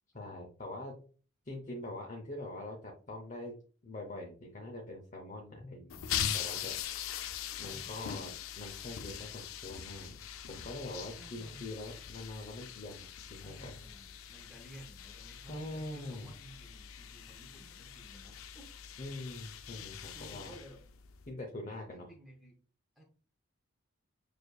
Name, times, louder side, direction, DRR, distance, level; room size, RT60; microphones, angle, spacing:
voice 1, 0.1-1.0 1.4-3.5 3.8-6.8 7.6-10.2 10.5-13.7 15.3-16.3 19.0-20.5 21.3-22.1, left 1 dB, 35° left, 0 dB, 0.7 m, -44 dB
sound 1, 5.9-21.3, left 9 dB, 80° left, 0.4 m, -42 dB
voice 2, 7.5-8.0 11.1-11.7 13.4-18.7 19.7-19.9 20.1-20.8 21.7-22.6 23.0-23.1, right 1 dB, ahead, 0 dB, 0.7 m, -54 dB
6.5 x 2.6 x 2.3 m, 0.38 s
head